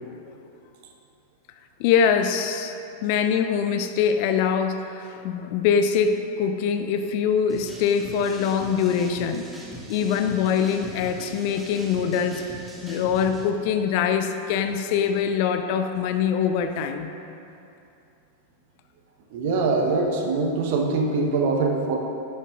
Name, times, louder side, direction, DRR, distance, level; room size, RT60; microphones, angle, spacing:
voice 1, 1.8-2.7 3.0-9.5 9.9-12.4 12.8-17.1, left 7 dB, 45° left, 8 dB, 0.5 m, -23 dB
sound 1, 7.5-13.4, right 2 dB, 10° right, 1.8 m, -41 dB
voice 2, 19.3-22.0, right 3 dB, 50° right, 2 dB, 1.0 m, -23 dB
11.0 x 8.1 x 2.4 m, 2.8 s
figure-of-eight pair, 90°, 0 cm